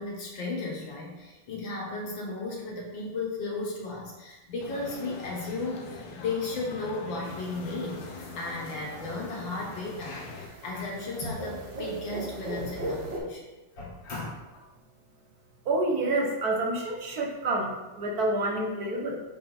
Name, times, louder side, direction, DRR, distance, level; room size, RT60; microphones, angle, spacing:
voice 1, 0.0-13.5 13.8-14.6, left 3 dB, 85° left, -2 dB, 2.2 m, -35 dB
sound 1, 4.6-10.5, left 4 dB, 70° left, 1.4 m, -42 dB
sound 2, 7.2-13.2, right 1 dB, 75° right, 2.2 m, -39 dB
voice 2, 15.6-19.2, right 2 dB, 60° right, -1 dB, 1.4 m, -28 dB
6.8 x 3.7 x 4.4 m, 1.1 s
omnidirectional pair, 2.0 m